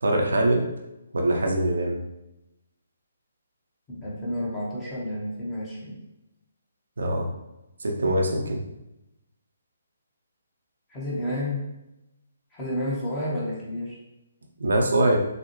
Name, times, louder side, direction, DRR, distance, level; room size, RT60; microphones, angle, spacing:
voice 1, 0.0-0.7 1.1-2.0 7.0-7.3 7.8-8.6 14.6-15.2, right 1 dB, 65° right, 1 dB, 0.8 m, -23 dB
voice 2, 3.9-6.0 7.9-8.1 10.9-11.7 12.5-14.0, left 1 dB, 15° left, -7 dB, 1.3 m, -31 dB
6.3 x 2.4 x 3.1 m, 0.93 s
figure-of-eight pair, 135°, 0 cm